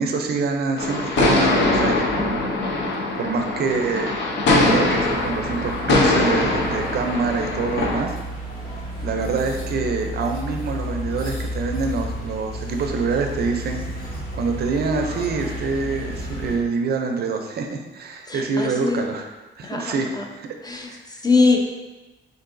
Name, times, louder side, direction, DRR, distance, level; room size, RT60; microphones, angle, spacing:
voice 1, 0.0-2.5 3.2-4.1 4.3-8.2 9.0-13.8 14.3-19.3 19.6-20.5 20.9-21.2, right 4 dB, 55° right, 4 dB, 0.5 m, -26 dB
sound 1, 0.8-8.0, left 2 dB, 65° left, 0.6 m, -22 dB
sound 2, 4.5-16.6, equal, 45° left, 1.3 m, -32 dB
voice 2, 18.3-19.0 19.6-20.2 20.6-20.9 21.2-21.6, left 3 dB, 20° left, 1 dB, 0.4 m, -21 dB
4.7 x 2.5 x 2.5 m, 1.1 s
cardioid pair, 90°, 20 cm